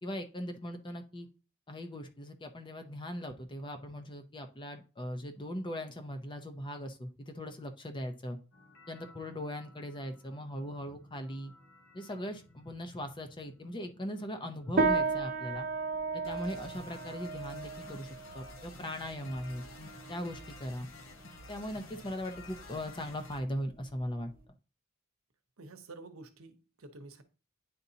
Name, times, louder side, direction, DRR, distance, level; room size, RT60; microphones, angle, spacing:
voice 1, 0.0-1.3 1.7-8.4 8.9-11.5 11.9-15.7 16.1-19.6 20.1-20.9 21.5-24.3, equal, 20° left, 0.7 m, -39 dB
sound 1, 8.5-23.4, left 2 dB, 65° left, 1.2 m, -53 dB
sound 2, 14.8-24.4, right 4 dB, 40° right, 0.7 m, -36 dB
voice 2, 25.6-27.2, right 3 dB, 85° right, 0.9 m, -49 dB
9.5 x 4.0 x 2.8 m
head